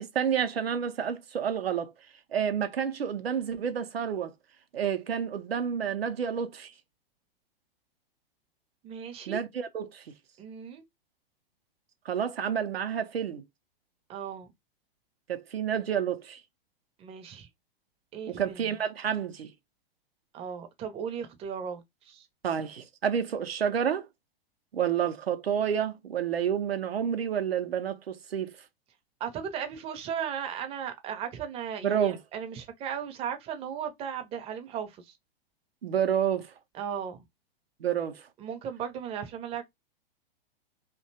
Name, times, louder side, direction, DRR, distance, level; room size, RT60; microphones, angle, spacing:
voice 1, 0.0-1.9 2.3-4.3 4.7-6.7 9.3-10.1 12.1-13.4 15.3-16.4 18.3-19.5 22.4-24.1 24.7-28.6 31.8-32.2 35.8-36.5 37.8-38.3, right 8 dB, 85° right, 0.5 m, -29 dB
voice 2, 8.8-9.4 10.4-10.8 14.1-14.5 17.0-17.5 18.1-18.6 20.3-22.3 29.2-35.1 36.7-37.2 38.4-39.6, right 8 dB, 20° right, 0.5 m, -36 dB
2.6 x 2.2 x 2.6 m
figure-of-eight pair, 105°, 30 cm